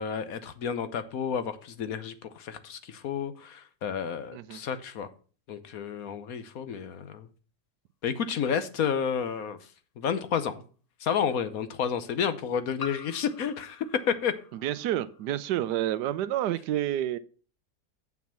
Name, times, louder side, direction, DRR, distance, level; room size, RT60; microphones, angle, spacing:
voice 1, 0.0-5.1 5.5-7.3 8.0-9.6 10.0-10.6 11.0-14.3, left 7 dB, 65° left, 1.2 m, -31 dB
voice 2, 4.3-4.6 14.5-17.2, right 12 dB, 90° right, 1.2 m, -29 dB
sound 1, 8.8-8.9 10.6-10.7 12.8-15.3, left 4 dB, 30° left, 0.7 m, -46 dB
7.3 x 6.0 x 7.1 m
omnidirectional pair, 1.8 m